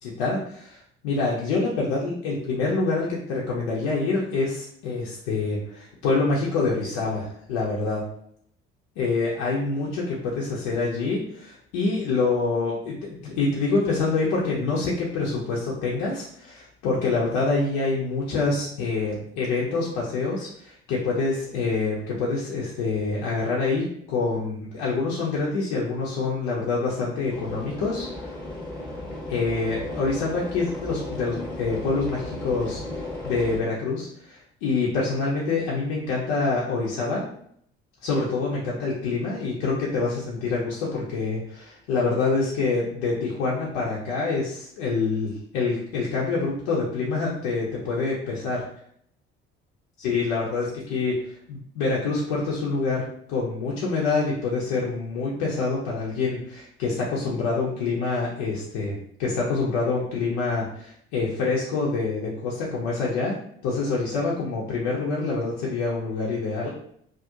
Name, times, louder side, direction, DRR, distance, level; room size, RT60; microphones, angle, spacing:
voice 1, 0.0-8.1 9.0-28.3 29.3-37.2 38.0-48.6 50.0-63.4 63.6-66.7, left 3 dB, 60° left, -4 dB, 0.6 m, -26 dB
sound 1, 27.3-33.6, left 1 dB, 5° left, 0.9 m, -35 dB
2.4 x 2.0 x 2.7 m, 0.66 s
figure-of-eight pair, 50°, 32 cm